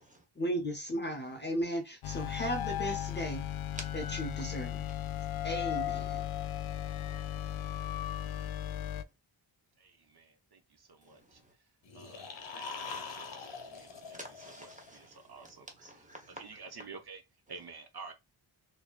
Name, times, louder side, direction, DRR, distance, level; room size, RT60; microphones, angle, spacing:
voice 1, 0.4-3.4 3.9-4.8 5.4-6.2, right 1 dB, 20° left, 0.8 m, -35 dB
sound 1, 2.0-9.0, left 11 dB, 85° left, 0.6 m, -36 dB
voice 2, 3.7-8.9 11.0-11.4 12.2-16.9 17.5-17.6, right 1 dB, 15° right, 1.1 m, -54 dB
sound 2, 11.9-15.0, left 4 dB, 65° left, 1.0 m, -43 dB
voice 3, 15.3-15.6 16.4-17.2 17.5-18.1, right 4 dB, 50° right, 0.7 m, -46 dB
4.9 x 2.9 x 2.4 m
wide cardioid pair, 140°, 48 cm